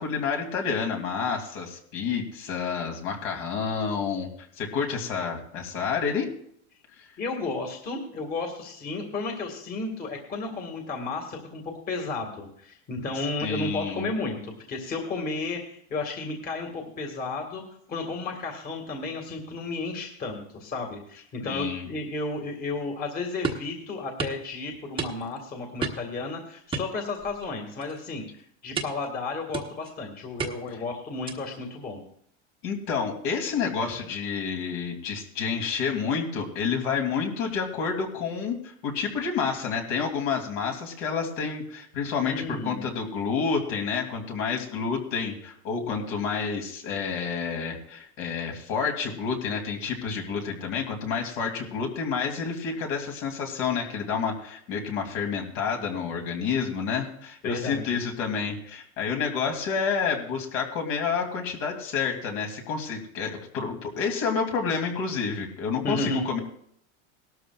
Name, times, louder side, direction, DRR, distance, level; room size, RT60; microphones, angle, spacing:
voice 1, 0.0-4.3 4.6-6.3 7.0-7.1 13.4-14.1 21.4-21.9 30.7-30.8 32.6-66.4, left 6 dB, 60° left, 2 dB, 2.9 m, -29 dB
voice 2, 7.2-15.6 15.9-17.6 17.9-28.2 28.6-32.0 42.3-42.8 57.4-58.0 65.8-66.2, left 3 dB, 25° left, 2 dB, 1.9 m, -33 dB
sound 1, 23.4-23.7 24.2-24.4 25.0-25.4 25.8-26.2 26.7-27.5 27.8-28.1 28.8-29.1 29.5-29.9 30.4-30.8 31.3-31.6, right 4 dB, 15° right, 1.1 m, -32 dB
18.5 x 12.5 x 2.4 m, 0.66 s
supercardioid pair, 150°, 36 cm